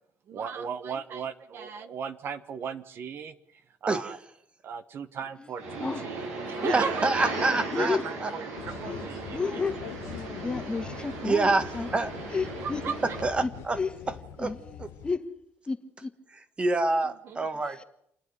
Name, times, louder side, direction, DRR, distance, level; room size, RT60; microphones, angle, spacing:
voice 1, 0.3-3.3 3.8-4.2 4.6-9.6 12.6-13.2 17.0-17.4, right 6 dB, 55° right, 1.2 m, -36 dB
sound 1, 5.6-13.2, right 2 dB, 90° right, 6.8 m, -37 dB
voice 2, 6.7-8.3 11.2-11.7 11.9-12.1 13.2-13.8 14.1-14.9 16.6-17.8, right 2 dB, 25° right, 1.6 m, -27 dB
voice 3, 7.7-8.0 8.8-9.0 9.3-9.8 10.4-11.9 12.3-12.9 13.4-13.5 13.8-13.9 14.4-14.8 15.0-15.2 15.7-16.1, left 4 dB, 20° left, 1.6 m, -31 dB
sound 2, 8.6-15.1, left 10 dB, 85° left, 1.4 m, -43 dB
28.0 x 9.8 x 9.6 m
cardioid pair, 115°, 5 cm